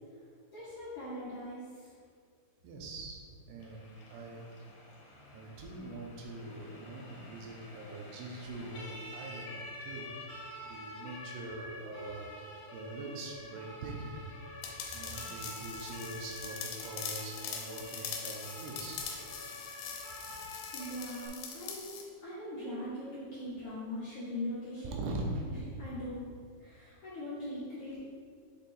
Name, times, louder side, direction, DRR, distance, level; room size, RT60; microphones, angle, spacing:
voice 1, 0.5-1.6 20.7-21.9 22.2-25.0 25.8-26.2 26.6-28.0, left 1 dB, 55° left, -12 dB, 1.7 m, -40 dB
voice 2, 2.6-3.2 3.5-4.5 5.3-10.1 10.6-12.3 12.7-14.2 14.9-19.0 20.3-20.4 24.8-25.5, right 2 dB, 90° right, 0 dB, 2.8 m, -42 dB
Siren, 3.6-21.3, left 1 dB, 70° left, 2.5 m, -48 dB
sound 1, 14.6-22.1, left 6 dB, 85° left, 2.6 m, -42 dB
7.1 x 3.5 x 4.2 m, 2.1 s
omnidirectional pair, 4.5 m